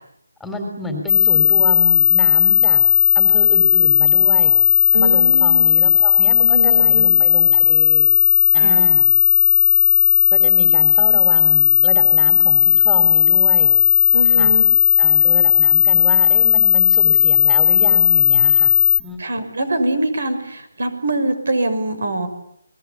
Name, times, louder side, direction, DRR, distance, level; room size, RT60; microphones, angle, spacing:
voice 1, 0.4-2.8 3.2-4.6 5.0-8.1 8.5-9.1 10.3-13.7 14.2-14.5 15.0-18.7 19.0-19.2, left 1 dB, ahead, 3 dB, 3.5 m, -29 dB
sound 1, 1.1-19.0, left 6 dB, 45° left, 1.2 m, -14 dB
voice 2, 4.9-5.7 6.4-7.1 8.5-8.8 14.1-14.7 19.2-22.3, right 1 dB, 65° right, 10 dB, 5.7 m, -23 dB
29.0 x 20.5 x 8.5 m, 0.71 s
hypercardioid pair, 165°, 0 cm